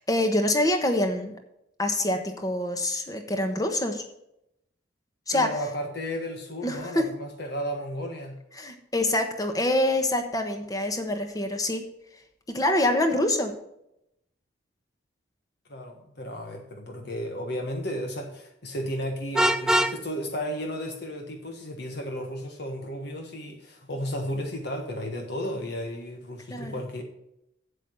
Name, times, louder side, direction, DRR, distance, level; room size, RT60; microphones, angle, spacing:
voice 1, 0.0-1.3 1.8-4.0 5.3-5.5 6.6-7.1 8.6-11.8 12.5-13.5 26.5-26.7, left 1 dB, 20° left, 6 dB, 1.2 m, -25 dB
voice 2, 5.3-8.4 15.7-27.0, equal, 55° left, 3 dB, 1.4 m, -33 dB
Vehicle horn car horn honking, 19.3-20.0, right 1 dB, 5° right, 0.4 m, -22 dB
8.4 x 8.2 x 5.5 m, 0.81 s
head